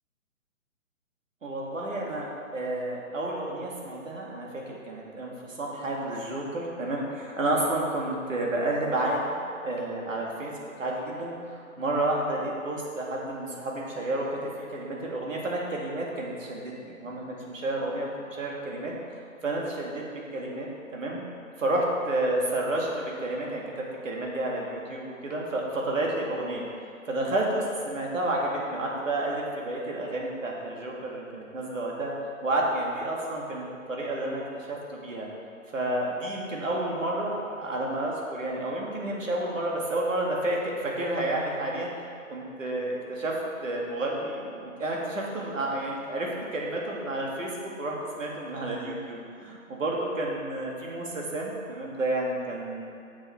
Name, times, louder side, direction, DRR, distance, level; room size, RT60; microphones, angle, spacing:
voice 1, 1.4-9.3 9.6-14.4 14.7-20.7 20.9-21.2 21.6-26.6 27.1-32.1 32.4-35.3 35.7-41.9 42.3-43.4 43.6-52.9, right 1 dB, 65° right, -2 dB, 2.1 m, -30 dB
7.8 x 7.2 x 4.3 m, 2.4 s
hypercardioid pair, 170°, 41 cm